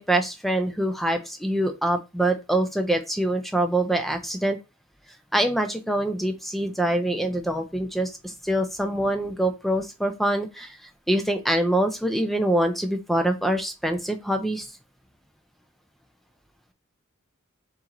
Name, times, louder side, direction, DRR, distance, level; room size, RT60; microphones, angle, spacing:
voice 1, 0.0-4.6 5.3-14.7, right 1 dB, ahead, 7 dB, 0.4 m, -25 dB
4.2 x 2.9 x 3.7 m, 0.26 s
head